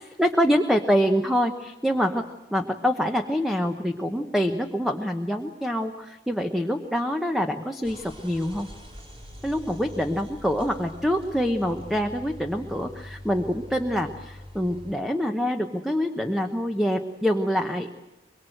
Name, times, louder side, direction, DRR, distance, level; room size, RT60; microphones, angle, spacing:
voice 1, 0.0-8.7 9.4-18.0, equal, ahead, 4 dB, 0.9 m, -25 dB
sound 1, 7.8-14.9, left 1 dB, 30° right, 4.3 m, -43 dB
24.0 x 23.0 x 7.8 m, 1.0 s
head